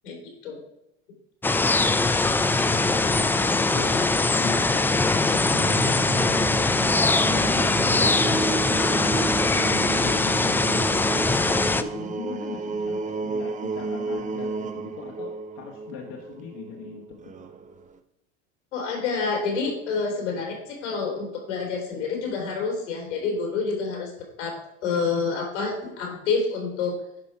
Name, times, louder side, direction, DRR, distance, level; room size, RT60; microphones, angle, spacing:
voice 1, 0.0-0.6 18.7-24.1 24.4-24.6 24.8-26.9, left 4 dB, 85° left, 1 dB, 3.1 m, -28 dB
sound 1, 1.4-11.8, left 3 dB, 5° left, 0.3 m, -22 dB
voice 2, 2.4-6.9 7.3-9.2 9.6-11.4 11.7-17.2, left 6 dB, 60° left, 0 dB, 1.4 m, -39 dB
sound 2, 2.6-18.0, right 5 dB, 20° right, 0.7 m, -33 dB
10.5 x 5.3 x 4.7 m, 0.85 s
hypercardioid pair, 90°, 34 cm